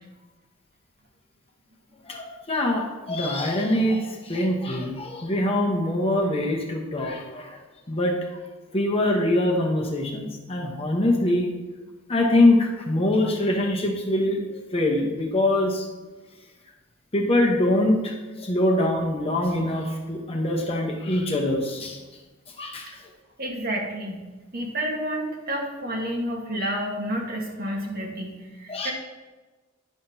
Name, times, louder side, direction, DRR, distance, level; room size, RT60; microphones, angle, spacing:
voice 1, 2.0-7.6 7.9-8.2 8.7-11.5 12.1-15.9 17.1-22.0 22.6-22.8 28.7-28.9, left 1 dB, 30° left, 0 dB, 1.0 m, -23 dB
voice 2, 23.4-24.2 24.5-28.9, right 1 dB, 50° right, 0 dB, 1.4 m, -30 dB
10.0 x 5.8 x 2.8 m, 1.2 s
head